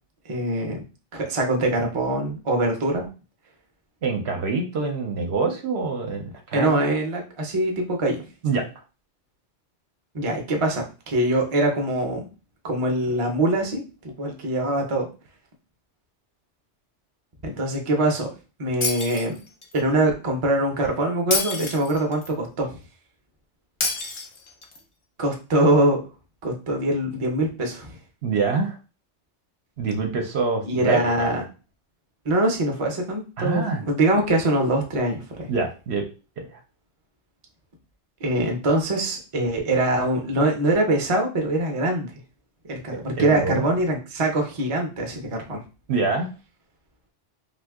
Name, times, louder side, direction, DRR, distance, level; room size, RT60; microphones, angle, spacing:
voice 1, 0.3-0.8 1.1-3.1 6.5-8.2 10.1-12.3 12.6-13.8 14.2-15.1 17.4-18.3 18.6-19.4 19.7-22.7 25.2-26.0 26.4-28.0 30.7-31.4 32.2-35.5 38.2-42.1 42.7-45.6, right 1 dB, 35° right, 2 dB, 0.6 m, -23 dB
voice 2, 4.0-6.9 8.4-8.7 28.2-28.8 29.8-31.3 33.4-33.8 35.5-36.0 36.4-36.6 43.2-43.6 45.9-46.3, right 4 dB, 65° right, 3 dB, 0.8 m, -25 dB
Shatter, 18.8-19.8 21.3-22.3 23.8-24.8, left 3 dB, 40° left, 0.4 m, -28 dB
2.7 x 2.4 x 3.4 m, 0.33 s
omnidirectional pair, 1.2 m